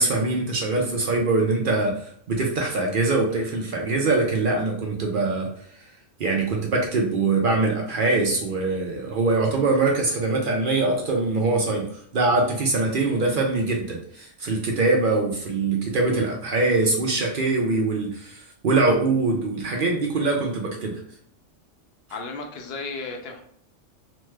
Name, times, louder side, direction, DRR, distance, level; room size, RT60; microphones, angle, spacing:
voice 1, 0.0-5.5 6.2-21.0, right 3 dB, 55° right, 0 dB, 0.6 m, -23 dB
voice 2, 22.1-23.4, left 3 dB, 65° left, 3 dB, 0.7 m, -34 dB
3.1 x 2.1 x 3.2 m, 0.62 s
omnidirectional pair, 1.3 m